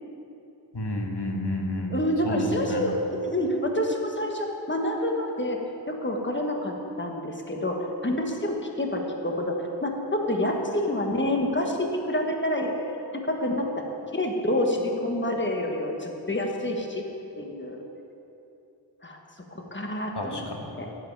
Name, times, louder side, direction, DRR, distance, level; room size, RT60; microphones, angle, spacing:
voice 1, 0.7-1.9 2.2-2.8 20.1-20.7, left 1 dB, 60° left, 1 dB, 1.5 m, -30 dB
voice 2, 1.9-2.9 3.2-5.6 5.9-12.7 13.1-13.7 14.1-17.0 17.4-17.8 19.0-19.2 19.5-20.5 20.8-20.9, left 1 dB, 25° left, 1 dB, 1.4 m, -28 dB
12.5 x 8.0 x 4.8 m, 3.0 s
wide cardioid pair, 55°, 45 cm